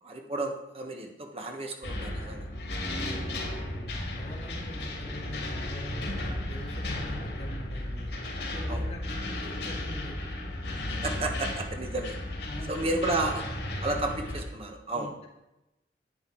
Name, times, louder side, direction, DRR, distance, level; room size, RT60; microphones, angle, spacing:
voice 1, 0.0-2.4 8.7-8.9 11.0-12.2 12.7-13.4 13.8-15.1, right 2 dB, 35° right, 3 dB, 1.3 m, -32 dB
sound 1, 1.8-14.4, left 1 dB, 85° left, 3.0 m, -34 dB
voice 2, 2.8-6.1 6.5-8.1 8.5-10.1 12.4-12.8 14.9-15.3, left 1 dB, 35° left, -3 dB, 2.2 m, -44 dB
9.8 x 9.2 x 4.6 m, 0.95 s
head